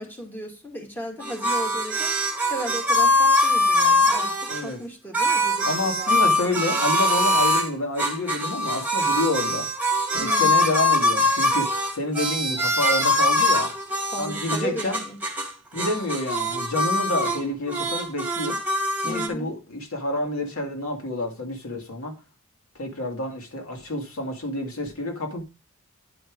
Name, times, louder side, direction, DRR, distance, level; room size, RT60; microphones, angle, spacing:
voice 1, 0.0-2.1 2.5-6.6 10.2-10.8 14.1-15.2 19.0-19.5, right 1 dB, 10° left, 2.4 m, -35 dB
sound 1, 1.2-4.6 5.1-7.7 8.0-15.5 15.8-17.4 17.7-19.3, left 1 dB, 10° right, 2.2 m, -23 dB
voice 2, 4.5-4.8 5.7-9.7 10.1-13.7 14.2-15.0 15.7-18.6 19.0-22.2 22.8-25.4, left 2 dB, 90° left, 2.2 m, -28 dB
11.0 x 5.1 x 4.7 m
head